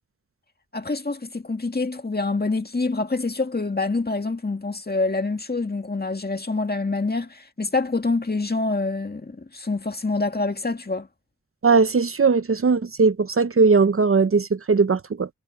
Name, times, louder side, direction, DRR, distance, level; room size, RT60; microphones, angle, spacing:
voice 1, 0.7-11.1, left 3 dB, 30° left, 2.0 m, -26 dB
voice 2, 11.6-15.3, right 4 dB, 45° right, 0.8 m, -19 dB
cardioid pair, 45°, 31 cm